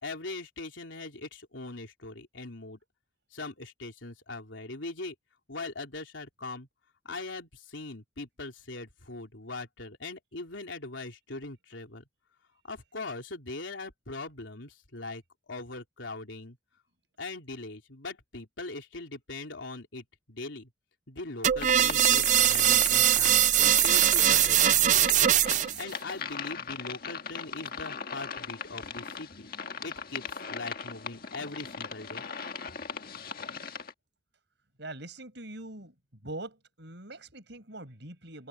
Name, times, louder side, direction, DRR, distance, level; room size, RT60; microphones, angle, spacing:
voice 1, 0.0-2.8 3.3-5.2 5.5-6.7 7.1-12.0 12.6-16.6 17.2-20.7 21.1-25.2 25.7-29.5 29.8-32.2, left 3 dB, 90° left, 3.6 m, -41 dB
sound 1, 21.4-25.8, right 11 dB, 40° right, 0.5 m, -22 dB
sound 2, 21.6-33.9, left 5 dB, 50° left, 1.7 m, -39 dB
voice 2, 34.8-35.9 36.2-38.5, right 2 dB, 65° right, 7.3 m, -43 dB
head